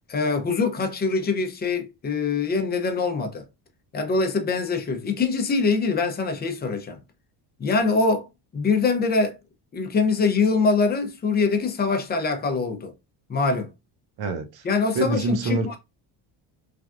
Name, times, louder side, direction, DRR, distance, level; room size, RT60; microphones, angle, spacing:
voice 1, 0.1-3.4 3.9-7.0 7.6-8.3 8.5-9.4 9.7-12.9 13.3-13.7 14.6-15.8, left 4 dB, 20° left, 0.5 m, -23 dB
voice 2, 14.2-14.6 14.9-15.8, right 4 dB, 60° right, 0.8 m, -26 dB
3.3 x 2.3 x 2.4 m
cardioid pair, 120°, 44 cm